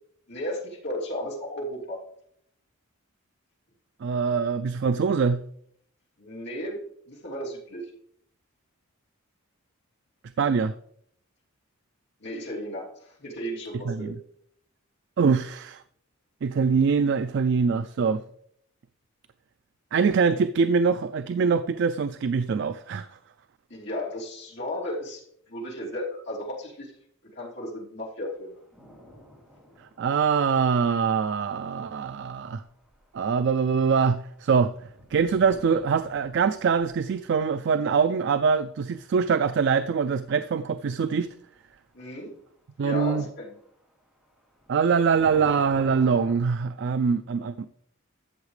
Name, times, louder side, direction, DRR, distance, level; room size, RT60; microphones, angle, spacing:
voice 1, 0.3-2.0 6.2-7.9 12.2-14.1 23.7-25.2 25.5-26.9 27.2-28.6 41.9-42.3 42.8-43.5, equal, 55° left, 3.0 m, -34 dB
voice 2, 4.0-5.4 10.4-10.7 13.9-14.1 15.2-15.8 16.4-18.2 19.9-23.1 30.0-32.6 33.1-34.7 35.1-41.3 42.8-43.3 44.7-47.7, right 5 dB, 55° right, 0.3 m, -23 dB
sound 1, 28.3-41.3 41.6-41.8 43.3-46.3, equal, ahead, 3.1 m, -49 dB
13.0 x 7.2 x 3.2 m
head